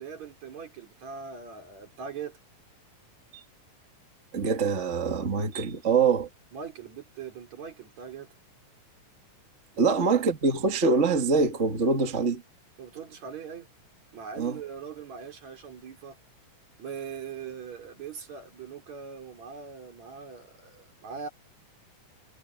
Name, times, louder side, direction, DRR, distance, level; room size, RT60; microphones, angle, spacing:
voice 1, 0.0-2.4 6.5-8.3 9.7-10.0 10.4-10.5 12.8-13.7 14.1-16.2 16.8-21.3, right 6 dB, 55° right, 4.7 m, -41 dB
voice 2, 4.3-6.3 9.8-12.4 14.4-14.6, right 4 dB, 25° right, 1.8 m, -24 dB
omnidirectional pair, 3.7 m